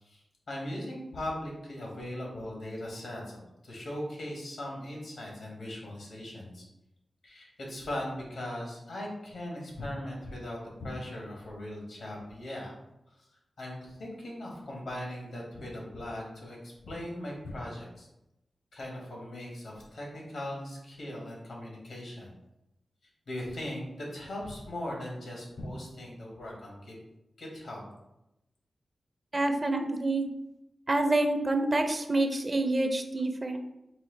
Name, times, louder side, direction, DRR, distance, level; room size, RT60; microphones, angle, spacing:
voice 1, 0.0-6.6 7.2-12.7 13.6-18.1 18.7-22.3 23.3-27.0 27.4-27.9, left 1 dB, 85° left, -2 dB, 1.3 m, -39 dB
voice 2, 29.3-30.3 30.9-33.6, right 2 dB, 40° right, 6 dB, 0.5 m, -27 dB
4.2 x 2.3 x 3.9 m, 0.90 s
cardioid pair, 50°, 0 cm